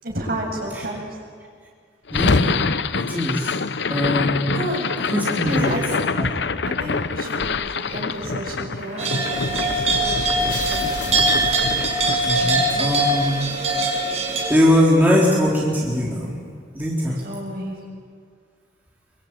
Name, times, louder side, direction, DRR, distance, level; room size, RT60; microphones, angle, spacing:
voice 1, 0.0-1.1 4.5-4.9 5.2-6.4 6.6-11.4 17.1-17.8, right 1 dB, 55° right, -1 dB, 7.6 m, -31 dB
sound 1, 2.1-14.3, left 4 dB, 70° left, 0.7 m, -26 dB
voice 2, 2.1-2.6 2.9-3.5 3.9-4.6 5.1-5.8 6.2-6.3 12.2-13.8 14.5-16.4 16.7-17.2, left 1 dB, 10° right, -5 dB, 3.8 m, -21 dB
sound 2, 9.0-14.5, right 2 dB, 35° right, 5.4 m, -22 dB
27.5 x 23.5 x 9.2 m, 2.1 s
head